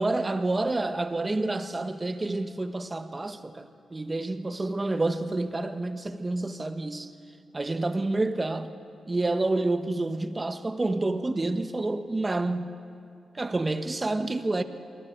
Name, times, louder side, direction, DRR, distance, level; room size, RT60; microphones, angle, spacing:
voice 1, 0.0-7.1 7.5-8.7 9.1-12.8 13.3-14.6, right 2 dB, 30° right, 1.3 m, -28 dB
28.0 x 22.5 x 4.7 m
cardioid pair, 60°, 0 cm